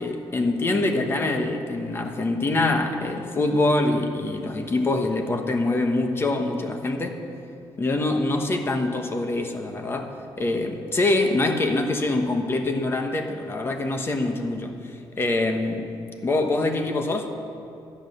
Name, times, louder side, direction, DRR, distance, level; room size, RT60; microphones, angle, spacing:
voice 1, 0.0-7.2 7.8-14.8 15.2-15.9 16.2-17.3, left 2 dB, 25° left, 5 dB, 1.2 m, -24 dB
12.5 x 10.5 x 6.7 m, 2.7 s
cardioid pair, 135°, 9 cm